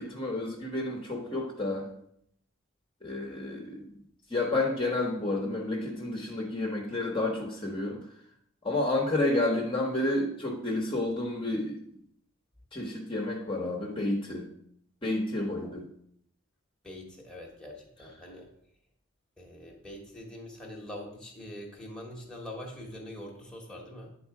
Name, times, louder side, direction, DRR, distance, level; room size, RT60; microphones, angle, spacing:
voice 1, 0.0-1.9 3.0-3.9 4.3-8.0 8.6-11.8 12.7-14.5 15.0-15.8, left 2 dB, 25° left, -1 dB, 1.0 m, -30 dB
voice 2, 16.8-18.5 19.4-24.1, left 1 dB, 5° left, -2 dB, 1.2 m, -43 dB
9.3 x 3.9 x 4.6 m, 0.72 s
head